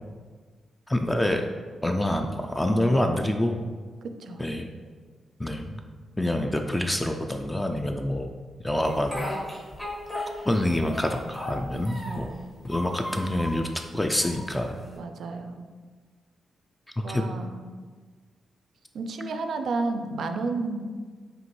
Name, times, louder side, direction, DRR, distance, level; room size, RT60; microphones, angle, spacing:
voice 1, 0.9-1.5 1.8-3.6 4.4-4.7 5.4-5.8 6.2-8.3 8.6-9.2 10.4-12.3 12.6-14.8 17.1-17.2, left 1 dB, 10° left, 4 dB, 0.3 m, -26 dB
voice 2, 4.0-4.5 12.0-12.5 14.9-15.6 17.0-17.8 18.9-20.9, right 3 dB, 70° right, 7 dB, 0.4 m, -32 dB
Speech, 8.8-10.6 10.9-12.3 12.6-13.6 14.2-15.0, left 1 dB, 25° left, 1.1 m, -36 dB
5.1 x 2.8 x 3.1 m, 1.5 s
cardioid pair, 70°, 0 cm